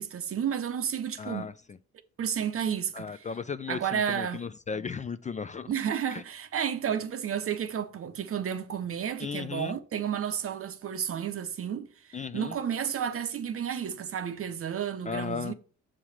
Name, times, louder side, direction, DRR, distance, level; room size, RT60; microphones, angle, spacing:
voice 1, 0.0-1.5 2.2-3.2 3.7-4.5 5.7-15.5, right 8 dB, 50° right, 0.7 m, -32 dB
voice 2, 1.2-1.5 2.9-5.7 6.1-6.2 9.2-9.8 12.1-12.6 15.1-15.5, left 5 dB, 25° left, 0.3 m, -35 dB
7.4 x 3.2 x 5.8 m
cardioid pair, 90°, 30 cm